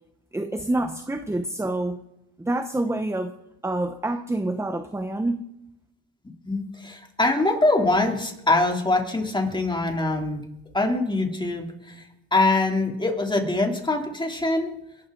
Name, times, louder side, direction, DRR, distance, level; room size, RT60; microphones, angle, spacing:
voice 1, 0.3-2.0 2.4-3.3 3.6-5.4, right 2 dB, 5° right, 9 dB, 0.9 m, -27 dB
voice 2, 6.4-10.4 10.7-12.0 12.3-14.7, left 2 dB, 10° left, 2 dB, 3.2 m, -23 dB
22.0 x 12.5 x 3.9 m, 0.85 s
supercardioid pair, 95°, 41 cm